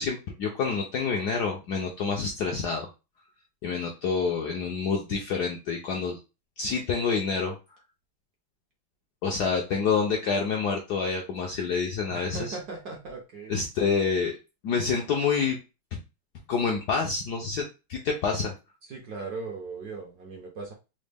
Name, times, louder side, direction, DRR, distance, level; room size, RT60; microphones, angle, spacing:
voice 1, 0.0-2.9 3.6-6.2 6.6-7.5 9.2-12.6 13.5-14.3 14.6-15.6 16.5-18.5, left 5 dB, 70° left, 0 dB, 0.9 m, -27 dB
voice 2, 12.1-13.6 18.9-20.7, right 4 dB, 65° right, 0 dB, 1.0 m, -38 dB
4.0 x 2.1 x 3.3 m, 0.28 s
omnidirectional pair, 2.3 m